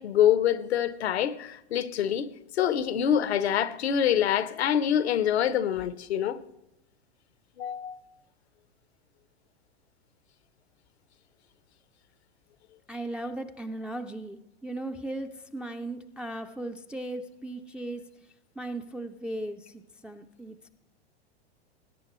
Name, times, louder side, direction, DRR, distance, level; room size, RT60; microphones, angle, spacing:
voice 1, 0.0-6.4 7.6-8.0, left 9 dB, 85° left, 0.9 m, -25 dB
voice 2, 12.9-18.1 18.6-20.7, right 1 dB, 5° right, 0.4 m, -37 dB
20.5 x 9.9 x 3.1 m
hypercardioid pair, 115°, 32 cm